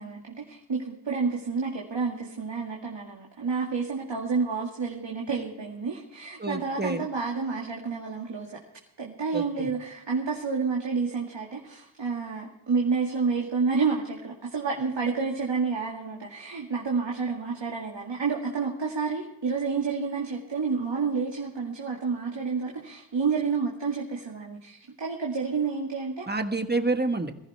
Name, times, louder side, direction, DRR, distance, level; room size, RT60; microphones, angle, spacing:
voice 1, 0.0-8.6 9.0-26.3, right 5 dB, 75° right, -2 dB, 2.2 m, -29 dB
voice 2, 6.4-7.1 9.3-9.7 26.3-27.3, right 3 dB, 20° right, 7 dB, 1.3 m, -28 dB
21.0 x 14.5 x 3.4 m, 0.83 s
wide cardioid pair, 80°, 44 cm